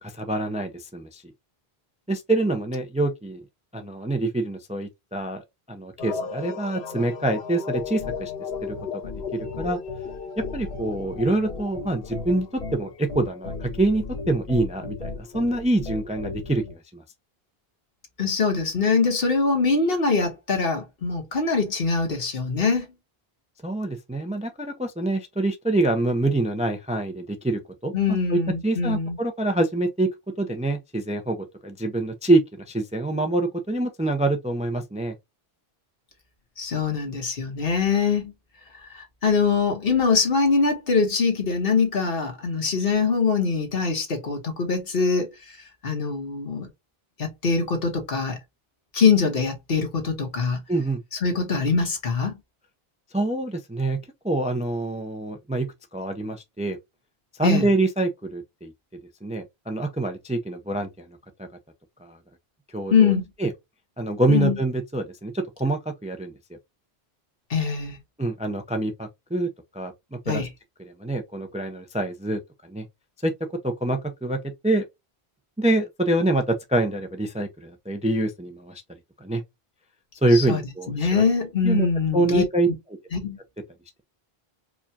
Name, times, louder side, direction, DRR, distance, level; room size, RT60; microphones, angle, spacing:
voice 1, 0.0-1.2 2.1-3.4 3.7-5.4 5.7-8.3 8.6-8.7 9.0-9.8 10.5-17.0 23.6-30.1 30.4-32.4 32.7-35.1 50.7-51.0 53.1-54.0 54.2-55.7 55.9-56.8 57.4-58.7 59.2-61.1 61.4-61.5 62.0-62.2 62.7-63.1 63.4-63.5 64.0-66.3 68.2-69.5 69.7-70.5 70.8-72.9 73.2-73.3 73.6-74.4 74.6-74.8 75.6-78.8 79.2-79.4 80.2-81.2 81.6-81.9 82.1-82.7, right 2 dB, 10° right, 0.4 m, -25 dB
sound 1, 6.0-15.9, left 6 dB, 90° left, 1.0 m, -37 dB
sound 2, 7.7-16.7, left 3 dB, 40° left, 1.1 m, -37 dB
voice 2, 18.2-22.9 27.9-29.2 36.6-38.3 38.8-45.3 45.8-46.7 47.2-48.4 48.9-50.6 51.2-52.4 57.4-57.7 62.9-63.3 64.3-64.5 67.5-68.0 70.3-70.5 80.3-80.6 80.9-82.4 83.1-83.4, left 5 dB, 70° left, 1.4 m, -23 dB
4.7 x 2.3 x 2.7 m
omnidirectional pair, 1.0 m